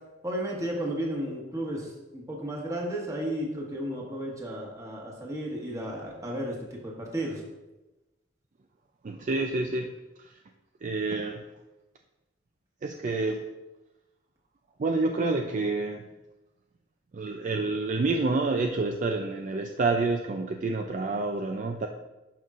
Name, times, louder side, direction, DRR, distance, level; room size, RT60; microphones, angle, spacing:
voice 1, 0.2-1.9 2.1-7.4, right 1 dB, 20° right, -2 dB, 1.5 m, -33 dB
voice 2, 9.0-9.9 10.2-10.3 10.8-11.4 12.8-13.4 14.8-16.0 17.1-21.9, right 3 dB, 45° right, 4 dB, 0.4 m, -28 dB
11.5 x 5.5 x 2.5 m, 1.1 s
head